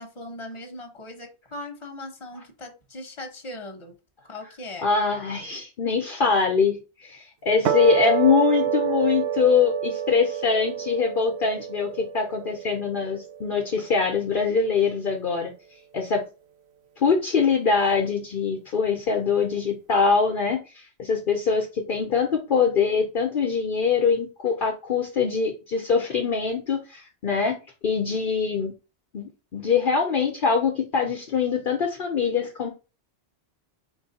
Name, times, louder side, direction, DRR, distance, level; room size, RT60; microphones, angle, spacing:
voice 1, 0.0-4.0 4.3-4.9, left 1 dB, 30° left, 3 dB, 1.1 m, -39 dB
voice 2, 4.8-15.5 15.9-16.2 17.0-20.6 21.0-27.6 27.8-28.7 29.1-32.7, left 5 dB, 55° left, 1 dB, 0.9 m, -23 dB
sound 1, 7.7-14.2, right 9 dB, 85° right, 0.9 m, -28 dB
4.4 x 2.7 x 4.1 m, 0.31 s
omnidirectional pair, 1.1 m